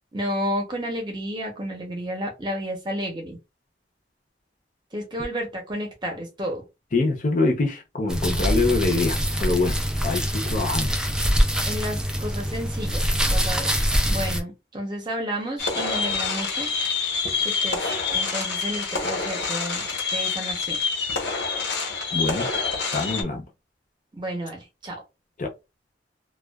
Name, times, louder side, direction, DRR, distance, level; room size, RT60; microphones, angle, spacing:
voice 1, 0.1-3.4 4.9-6.6 11.7-16.7 17.4-17.8 18.1-19.8 20.1-20.8 24.1-25.0, equal, 25° right, 0.8 m, -31 dB
voice 2, 6.9-11.0 22.1-22.5 22.9-23.5 25.4-25.5, left 3 dB, 45° left, 0.6 m, -25 dB
sound 1, 8.1-14.4, equal, 5° right, 0.3 m, -24 dB
sound 2, 15.6-23.2, left 4 dB, 85° left, 1.1 m, -27 dB
2.3 x 2.3 x 2.3 m
head